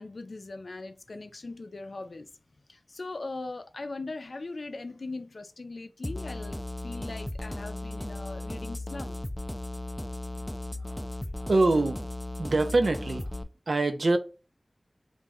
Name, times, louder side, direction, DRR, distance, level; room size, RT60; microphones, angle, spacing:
voice 1, 0.0-2.3 2.7-9.2, left 3 dB, 85° left, 0.4 m, -40 dB
sound 1, 6.0-13.4, left 1 dB, 15° left, 0.3 m, -36 dB
voice 2, 11.4-12.0 12.4-13.3 13.7-14.2, right 2 dB, 85° right, 0.5 m, -24 dB
3.1 x 2.5 x 3.5 m
wide cardioid pair, 55°, 0 cm